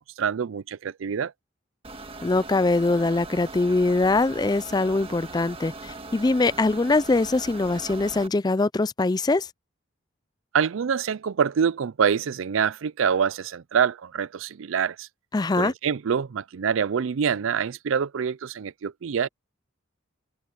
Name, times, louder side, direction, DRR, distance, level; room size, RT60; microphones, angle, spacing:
voice 1, 0.2-1.3 10.5-15.1 15.6-19.3, right 7 dB, 70° right, 0.4 m, -25 dB
sound 1, 1.8-8.3, right 3 dB, 30° right, 1.6 m, -40 dB
voice 2, 2.2-9.5 15.3-15.7, left 3 dB, 20° left, 0.4 m, -23 dB
open air
head